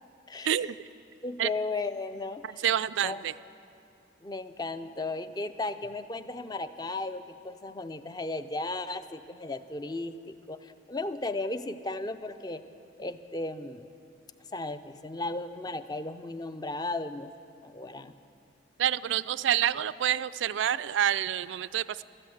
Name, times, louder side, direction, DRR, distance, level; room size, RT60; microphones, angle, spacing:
voice 1, 0.3-0.7 1.2-2.6 3.0-3.2 4.2-12.6 13.0-13.9 14.5-17.3 17.6-18.1, left 2 dB, 20° left, 11 dB, 0.5 m, -35 dB
voice 2, 2.6-3.3 18.8-22.0, right 10 dB, 75° right, 16 dB, 0.3 m, -27 dB
13.5 x 13.0 x 7.8 m, 2.7 s
head